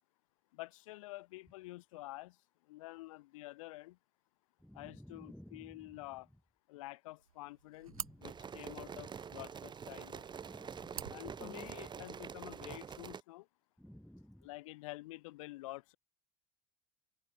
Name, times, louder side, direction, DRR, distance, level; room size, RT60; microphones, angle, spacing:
voice 1, 0.5-2.4 2.7-4.0 4.7-6.3 6.7-7.9 8.2-10.2 11.1-13.5 14.4-16.0, left 19 dB, 70° left, 3.8 m, -48 dB
voice 2, 4.6-6.2 7.9-8.5 10.4-11.9 13.8-14.5, equal, ahead, 4.6 m, -55 dB
sound 1, 7.2-12.2, right 7 dB, 85° right, 2.1 m, -51 dB
sound 2, 8.2-13.2, right 7 dB, 25° right, 1.0 m, -46 dB
hypercardioid pair, 70°, 18 cm